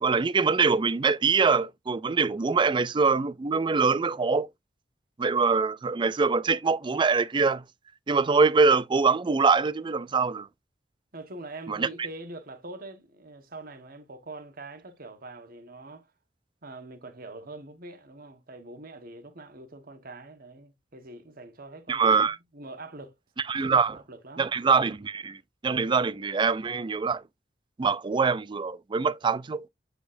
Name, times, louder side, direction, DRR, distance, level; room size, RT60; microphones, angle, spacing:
voice 1, 0.0-4.5 5.2-7.6 8.1-10.5 11.7-11.9 21.9-22.4 23.5-24.0 24.4-25.4 25.6-27.2 27.8-29.7, right 4 dB, 25° right, 0.4 m, -24 dB
voice 2, 11.1-16.1 16.6-23.1 23.5-24.5, right 2 dB, 55° right, 1.4 m, -44 dB
8.2 x 5.0 x 2.6 m
head